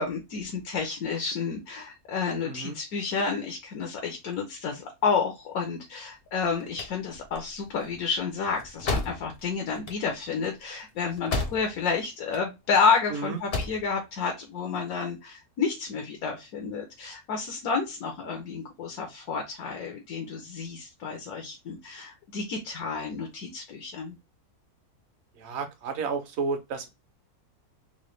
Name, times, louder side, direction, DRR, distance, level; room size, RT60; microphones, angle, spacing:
voice 1, 0.0-24.2, left 5 dB, 70° left, 1.2 m, -30 dB
voice 2, 2.4-2.8 13.1-13.4 25.4-26.9, right 4 dB, 55° right, 0.9 m, -32 dB
sound 1, 6.3-11.9 12.2-12.9 13.3-13.9, left 3 dB, 50° left, 0.8 m, -34 dB
3.9 x 2.2 x 3.1 m
omnidirectional pair, 1.6 m